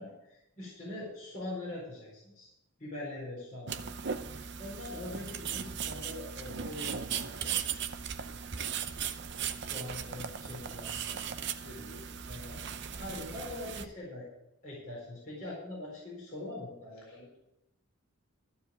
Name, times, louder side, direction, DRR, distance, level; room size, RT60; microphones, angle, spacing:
voice 1, 0.0-2.5 2.8-3.9 4.6-7.6 9.5-11.2 12.3-12.6 13.0-14.2 14.6-17.3, left 1 dB, 35° left, -8 dB, 4.4 m, -43 dB
sound 1, 3.7-13.9, right 7 dB, 50° right, 0.6 m, -38 dB
voice 2, 11.6-12.0 17.1-17.4, left 1 dB, 65° left, -4 dB, 2.9 m, -50 dB
14.5 x 4.9 x 8.9 m, 0.91 s
head